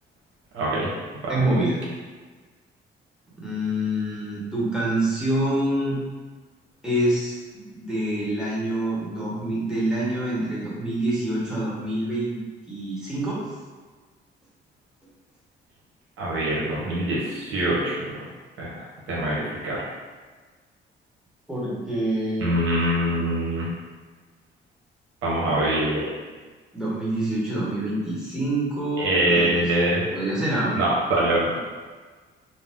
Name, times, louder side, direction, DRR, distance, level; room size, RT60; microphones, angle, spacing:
voice 1, 0.5-0.9 1.2-1.3 16.2-18.0 18.6-19.8 22.4-23.7 25.2-26.1 29.0-30.0 30.8-31.6, right 1 dB, 85° right, -6 dB, 0.9 m, -24 dB
voice 2, 1.3-1.8 3.4-6.0 6.8-12.4 12.7-13.5 21.5-22.5 23.0-23.2 26.7-29.6 30.1-30.8, right 1 dB, 5° right, -8 dB, 1.1 m, -26 dB
2.7 x 2.1 x 3.4 m, 1.4 s
cardioid pair, 90°, 20 cm